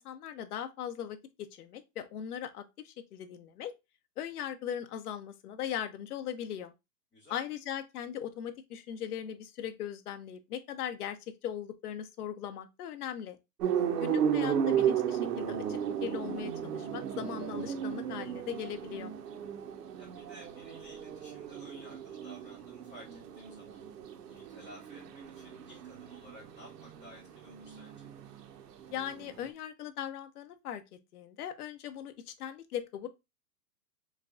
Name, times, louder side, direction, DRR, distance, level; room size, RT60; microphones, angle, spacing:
voice 1, 0.0-3.7 4.2-6.7 7.3-13.4 14.0-19.1 28.9-30.8 31.1-33.1, left 9 dB, 70° left, 0.7 m, -39 dB
sound 1, 13.6-29.5, right 8 dB, 80° right, 0.8 m, -35 dB
voice 2, 20.0-23.8 24.2-28.1, equal, 10° left, 2.0 m, -54 dB
3.5 x 3.2 x 2.4 m
hypercardioid pair, 175°, 47 cm